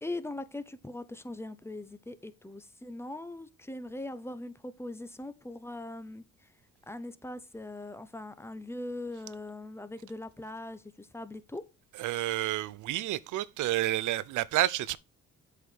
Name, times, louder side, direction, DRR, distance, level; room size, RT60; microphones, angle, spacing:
voice 1, 0.0-6.5 6.9-11.7, left 2 dB, 10° left, 0.9 m, -41 dB
voice 2, 12.0-15.0, right 15 dB, 80° right, 0.7 m, -30 dB
8.0 x 4.8 x 5.5 m
cardioid pair, 90°, 30 cm